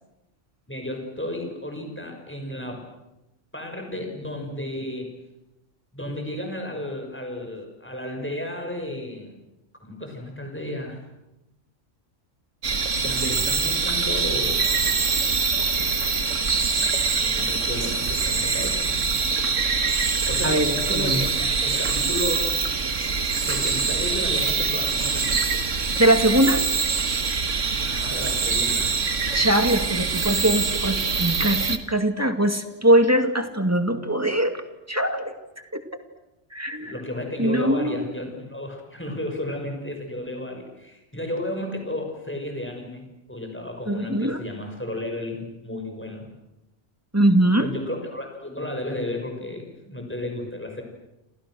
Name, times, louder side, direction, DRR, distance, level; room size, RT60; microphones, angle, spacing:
voice 1, 0.7-2.9 3.5-5.1 5.9-9.4 9.8-11.0 12.9-14.7 17.1-19.0 20.3-21.3 21.6-22.6 23.5-25.4 27.8-28.9 36.8-46.3 47.6-50.8, left 1 dB, 10° left, 3 dB, 6.0 m, -33 dB
sound 1, 12.6-31.8, right 5 dB, 75° right, 1.9 m, -24 dB
voice 2, 20.4-21.2 26.0-26.6 29.3-34.6 34.9-35.3 35.7-35.8 36.5-36.9 37.4-38.0 43.9-44.4 47.1-47.7, right 1 dB, 10° right, 6 dB, 2.2 m, -21 dB
29.0 x 28.5 x 6.4 m, 0.93 s
omnidirectional pair, 1.3 m